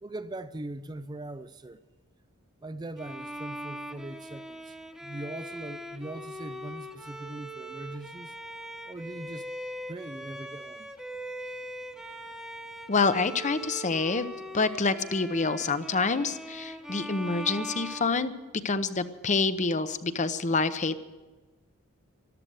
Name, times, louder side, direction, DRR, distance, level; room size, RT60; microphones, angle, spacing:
voice 1, 0.0-1.8 2.6-4.8 5.0-8.3 8.9-9.5 9.9-10.9, right 2 dB, 20° right, 0.4 m, -40 dB
Bowed string instrument, 3.0-18.8, equal, 5° right, 1.1 m, -41 dB
voice 2, 12.9-14.3 14.5-18.3 18.6-21.0, left 4 dB, 35° left, 0.7 m, -27 dB
14.0 x 12.5 x 8.0 m
head